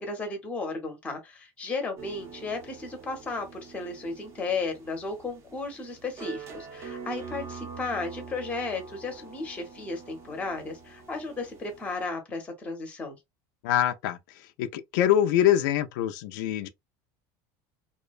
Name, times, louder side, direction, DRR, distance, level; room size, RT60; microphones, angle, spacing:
voice 1, 0.0-13.2, left 3 dB, 15° left, 0.7 m, -34 dB
sound 1, 2.0-12.1, right 5 dB, 25° right, 0.6 m, -45 dB
voice 2, 13.6-14.2 14.6-16.7, left 11 dB, 80° left, 0.4 m, -24 dB
2.5 x 2.1 x 2.4 m
cardioid pair, 170°, 10 cm